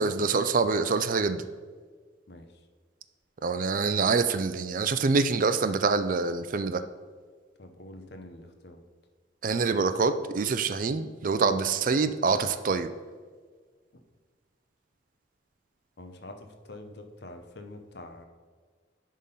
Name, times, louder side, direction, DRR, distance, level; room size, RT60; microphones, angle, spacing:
voice 1, 0.0-1.5 3.4-6.8 9.4-12.9, right 4 dB, 45° right, 11 dB, 0.4 m, -25 dB
voice 2, 7.6-8.8 16.0-18.3, left 2 dB, 60° left, 5 dB, 0.8 m, -45 dB
10.5 x 3.8 x 5.5 m, 1.5 s
head